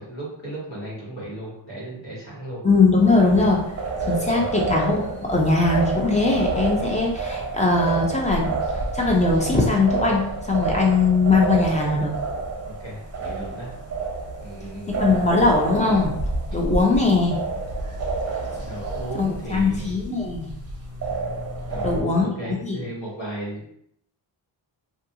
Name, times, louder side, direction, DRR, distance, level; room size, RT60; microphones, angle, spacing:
voice 1, 0.0-2.6 3.4-3.5 4.3-4.7 12.6-13.7 14.4-15.2 18.6-20.0 21.7-23.7, right 1 dB, 70° left, -6 dB, 1.4 m, -35 dB
voice 2, 2.6-3.6 4.1-8.5 8.9-12.1 14.9-16.1 16.5-17.4 19.2-20.5 21.8-22.8, left 3 dB, 15° left, -2 dB, 0.5 m, -20 dB
sound 1, 3.0-22.0, right 3 dB, 35° right, 0.6 m, -29 dB
2.5 x 2.3 x 2.8 m, 0.72 s
wide cardioid pair, 130°, 46 cm